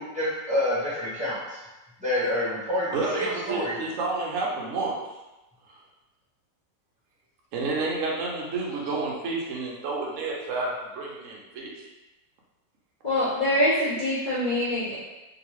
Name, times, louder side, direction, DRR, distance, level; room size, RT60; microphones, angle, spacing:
voice 1, 0.0-1.6 2.0-3.8, left 1 dB, 5° right, -10 dB, 0.7 m, -28 dB
voice 2, 2.9-4.9 7.5-11.9, right 3 dB, 65° right, -3 dB, 0.8 m, -30 dB
voice 3, 13.0-14.9, left 1 dB, 75° left, -11 dB, 0.4 m, -24 dB
2.8 x 2.8 x 3.0 m, 1.0 s
omnidirectional pair, 1.9 m